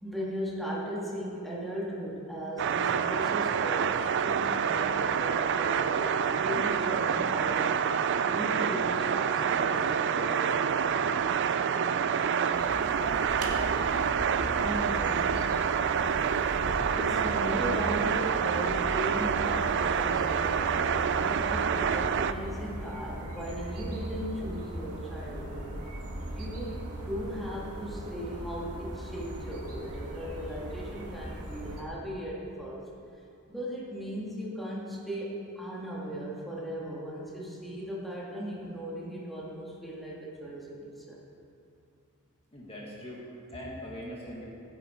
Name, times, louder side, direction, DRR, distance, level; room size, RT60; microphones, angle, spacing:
voice 1, 0.0-7.7 8.2-10.7 14.6-15.1 16.9-25.7 26.2-32.8 33.5-41.2, equal, ahead, -6 dB, 2.1 m, -37 dB
sound 1, 2.6-22.3, right 7 dB, 55° right, 0.4 m, -27 dB
sound 2, 12.5-31.8, right 1 dB, 85° right, 1.9 m, -39 dB
voice 2, 14.3-14.6 42.5-44.5, equal, 25° left, -4 dB, 1.7 m, -42 dB
16.0 x 9.5 x 4.5 m, 2.5 s
head